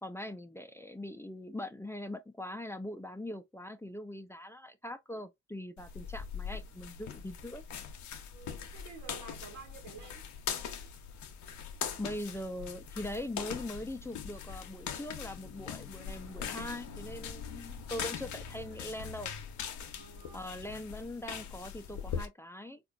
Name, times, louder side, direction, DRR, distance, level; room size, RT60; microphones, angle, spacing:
voice 1, 0.0-7.6 12.0-19.3 20.3-22.8, left 1 dB, 10° left, 0.5 m, -41 dB
sound 1, 5.8-22.3, left 7 dB, 75° left, 0.7 m, -41 dB
voice 2, 8.3-10.3 19.9-20.5, right 5 dB, 85° right, 1.5 m, -50 dB
4.2 x 2.5 x 2.3 m
supercardioid pair, 55°, 29 cm